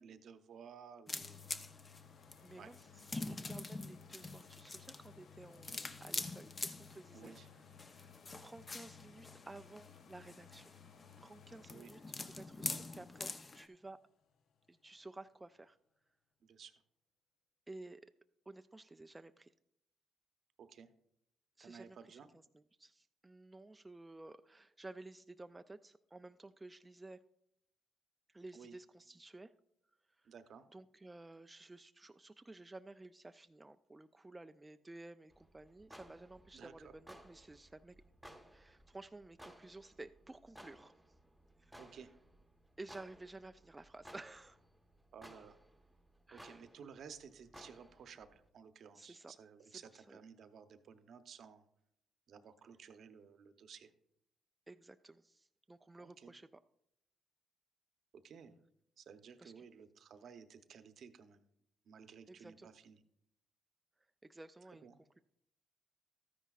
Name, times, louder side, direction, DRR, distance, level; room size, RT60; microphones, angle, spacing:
voice 1, 0.0-1.4 2.6-2.7 7.1-7.5 11.7-11.9 16.4-16.7 20.6-20.9 21.6-22.3 28.5-28.8 30.2-30.7 36.5-36.9 41.8-42.1 45.1-45.6 46.3-51.7 52.3-53.9 56.0-56.3 58.1-58.5 59.0-61.5 61.8-63.0 64.7-65.0, right 6 dB, 65° right, 10 dB, 0.8 m, -55 dB
sound 1, 1.1-13.7, left 3 dB, 30° left, 0.6 m, -46 dB
sound 2, 1.2-14.9 15.4-15.5, left 9 dB, 75° left, 0.6 m, -61 dB
voice 2, 2.4-7.3 7.9-10.7 11.2-12.0 12.3-14.0 14.7-15.8 17.7-18.0 18.5-19.5 21.6-27.2 28.3-29.5 30.2-30.3 30.7-38.0 38.5-40.9 41.6-42.0 42.8-44.6 46.3-46.6 48.9-49.3 49.6-50.2 54.7-56.5 59.4-59.6 62.3-62.7 64.2-65.2, right 2 dB, 15° right, 9 dB, 0.3 m, -54 dB
sound 3, 35.3-48.5, equal, ahead, 1.0 m, -60 dB
13.0 x 9.9 x 2.4 m, 0.78 s
cardioid pair, 90°, 0 cm